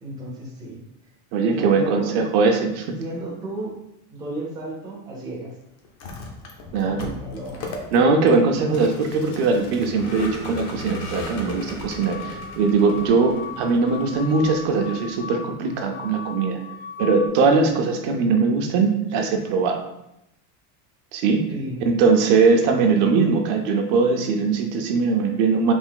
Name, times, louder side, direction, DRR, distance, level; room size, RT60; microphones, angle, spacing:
voice 1, 0.0-0.8 1.5-2.3 3.0-3.7 4.1-5.5 6.9-7.6 21.5-21.8, right 1 dB, 10° right, -4 dB, 0.5 m, -33 dB
voice 2, 1.3-2.9 6.7-7.1 7.9-16.6 17.0-19.8 21.1-21.4 21.8-25.7, right 4 dB, 55° right, 3 dB, 0.6 m, -20 dB
Vehicle, 5.8-15.2, left 2 dB, 40° left, 0.6 m, -37 dB
sound 1, 11.9-17.3, left 5 dB, 85° left, 1.0 m, -38 dB
3.5 x 2.5 x 3.7 m, 0.82 s
cardioid pair, 175°, 41 cm